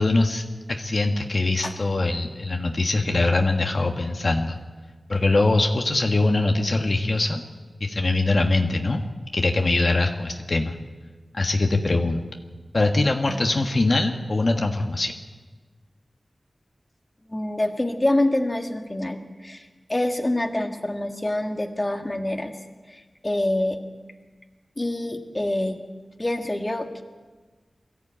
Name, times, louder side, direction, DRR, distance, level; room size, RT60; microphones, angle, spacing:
voice 1, 0.0-4.6 5.1-7.4 7.8-9.0 9.3-10.7 11.3-12.2 12.7-15.1, left 2 dB, 50° left, 3 dB, 1.5 m, -22 dB
voice 2, 17.3-22.5 22.9-23.8 24.8-25.8 26.2-27.0, left 1 dB, 25° left, 4 dB, 1.8 m, -26 dB
22.5 x 14.5 x 8.8 m, 1.3 s
wide cardioid pair, 80°, 0 cm